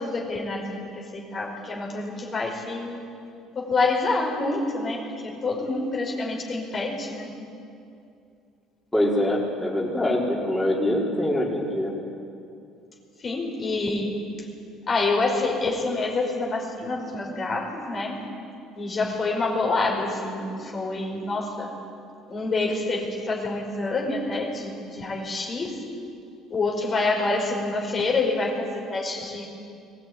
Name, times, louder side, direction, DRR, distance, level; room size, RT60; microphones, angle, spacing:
voice 1, 0.0-3.0 3.6-7.3 13.2-14.2 14.9-18.2 18.8-21.7 22.3-25.8 26.5-29.5, left 3 dB, 40° left, 0 dB, 5.1 m, -27 dB
voice 2, 8.9-11.9, left 1 dB, 10° left, -5 dB, 4.7 m, -24 dB
22.0 x 17.0 x 9.6 m, 2.6 s
supercardioid pair, 90°, 0 cm